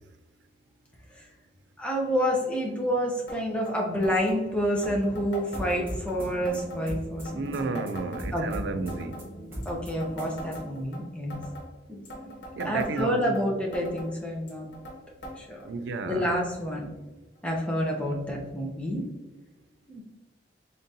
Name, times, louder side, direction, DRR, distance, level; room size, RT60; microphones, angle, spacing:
voice 1, 1.8-7.5 8.3-8.7 9.6-11.4 11.9-12.3 12.6-14.7 15.3-15.6 16.1-16.9 17.4-19.0 19.9-20.0, equal, 5° left, 0.6 m, -28 dB
sound 1, 3.3-3.4 3.7-3.8 4.0-4.4 4.8-6.1 6.5-6.8 7.2-8.6 8.9-9.3 9.6-11.0 11.3-11.7 12.1-13.4 13.7-14.1 14.5-15.0 15.2-15.4 15.6-15.7 16.5-16.6 17.4-17.5, equal, 90° left, 1.3 m, -41 dB
sound 2, 5.5-10.8, right 1 dB, 15° right, 1.1 m, -39 dB
voice 2, 7.3-9.2 12.6-13.4 15.6-16.3, right 4 dB, 80° right, 0.4 m, -32 dB
3.9 x 3.6 x 2.6 m
head